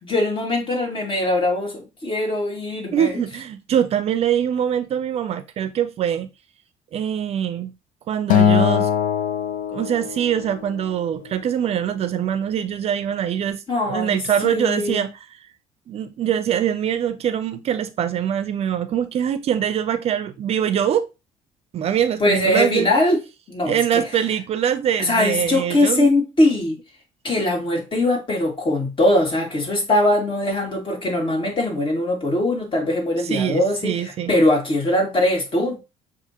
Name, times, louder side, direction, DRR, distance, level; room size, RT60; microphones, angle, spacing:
voice 1, 0.0-3.2 13.7-15.1 22.2-23.2 23.5-24.0 25.0-26.7 27.2-35.8, left 1 dB, 35° left, 2.2 m, -21 dB
voice 2, 2.9-6.3 6.9-7.7 8.1-8.9 9.7-15.1 15.9-21.1 21.7-22.9 23.6-26.1 33.2-34.3, right 9 dB, 50° right, 0.5 m, -23 dB
Acoustic guitar, 8.3-10.7, left 7 dB, 80° left, 0.7 m, -20 dB
7.1 x 2.6 x 2.8 m
cardioid pair, 105°, 14 cm